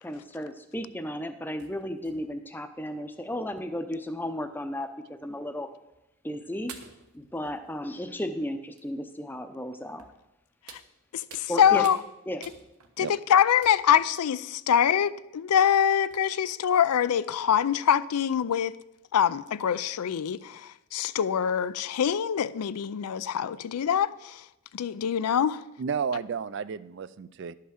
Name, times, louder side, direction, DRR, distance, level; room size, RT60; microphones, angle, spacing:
voice 1, 0.0-5.7 6.2-6.7 7.1-10.1 11.5-11.8 12.3-12.4, left 1 dB, 10° left, 0.6 m, -34 dB
sound 1, 0.7-1.0 1.6-2.6 3.4-3.5 3.7-3.8 4.8-4.9 5.9-6.0 6.7-8.1 8.8-8.9 10.0-10.2 10.7-11.6 11.8-12.1 12.4-13.1 13.6-14.1 14.6-15.0 15.7-15.8 16.1-16.2, right 6 dB, 80° right, 1.2 m, -49 dB
voice 2, 11.1-12.0 13.0-18.8 19.1-24.4 24.7-25.6, left 8 dB, 90° left, 0.4 m, -24 dB
voice 3, 25.8-27.5, right 6 dB, 50° right, 0.3 m, -32 dB
11.0 x 5.7 x 6.4 m
head